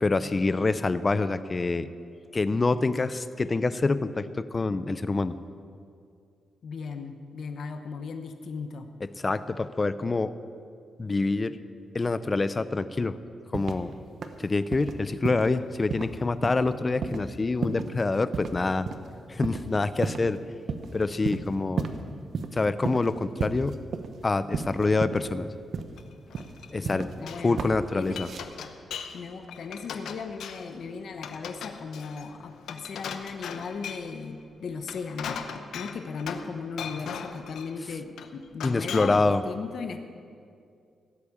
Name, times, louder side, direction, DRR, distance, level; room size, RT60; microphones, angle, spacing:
voice 1, 0.0-1.9 2.3-5.3 9.0-10.3 11.0-11.6 11.9-13.2 13.5-13.9 14.4-18.9 19.3-20.4 20.9-21.9 22.5-23.8 24.2-25.5 26.7-27.1 27.4-28.3 38.6-39.4, left 3 dB, 25° left, 14 dB, 0.5 m, -26 dB
voice 2, 6.6-8.9 26.8-27.6 27.9-28.2 29.1-35.4 35.7-40.0, left 5 dB, 60° left, 7 dB, 1.0 m, -37 dB
sound 1, 13.5-13.9 14.2-14.4 14.7-14.9 15.2-15.6 15.9-16.1 16.4-16.7 17.0-17.2 17.6-18.0 18.3-18.6 18.9-19.0 19.4-19.7 20.0-20.4 20.7-20.9 21.2-22.0 22.3-22.5 22.8-23.1 23.4-24.2 24.5-25.3 25.7-26.0 26.3-27.2 27.6-27.7 28.0-28.4, right 5 dB, 55° right, 0.9 m, -32 dB
Glass, 26.0-26.9 27.1-27.5 27.9-29.2 29.5-30.8 31.2-34.1 34.7-36.5 36.8-37.7 38.2-39.3, left 7 dB, 85° left, 0.8 m, -39 dB
16.5 x 8.5 x 7.1 m, 2.4 s
wide cardioid pair, 140°, 0 cm